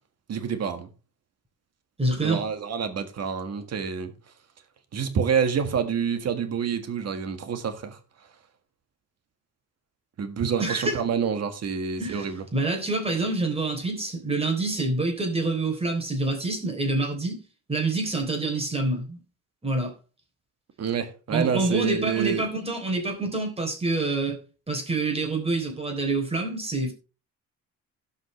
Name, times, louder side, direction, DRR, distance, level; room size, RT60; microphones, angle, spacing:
voice 1, 0.3-0.9 2.2-4.1 4.9-8.0 10.2-12.4 20.8-22.4, right 7 dB, 55° right, 1.7 m, -27 dB
voice 2, 2.0-2.4 10.6-11.0 12.0-17.4 17.7-19.2 19.6-19.9 21.3-24.4 24.7-26.9, right 2 dB, 20° right, 3.6 m, -27 dB
17.0 x 5.7 x 3.3 m
cardioid pair, 90°, 30 cm